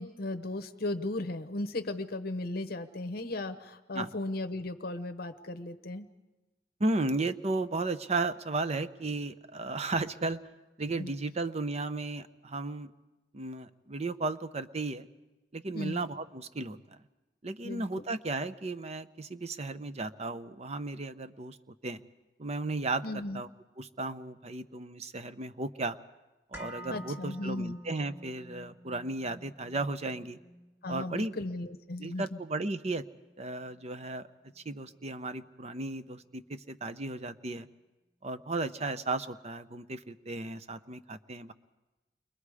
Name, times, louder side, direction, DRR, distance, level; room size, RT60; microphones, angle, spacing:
voice 1, 0.0-6.1 11.0-11.1 15.7-16.1 17.6-18.0 23.0-23.4 26.9-27.8 30.8-32.4, left 2 dB, 55° left, 9 dB, 0.9 m, -36 dB
voice 2, 6.8-10.4 10.8-12.9 13.3-15.1 15.5-17.0 17.4-22.0 22.4-23.5 23.8-26.0 26.5-30.4 30.9-31.3 32.0-33.0 33.4-34.3 34.6-37.7 38.2-41.5, right 2 dB, 35° right, 12 dB, 0.7 m, -35 dB
sound 1, 26.5-34.6 34.9-35.0, equal, 15° right, 2.0 m, -50 dB
29.5 x 22.5 x 4.9 m, 1.1 s
head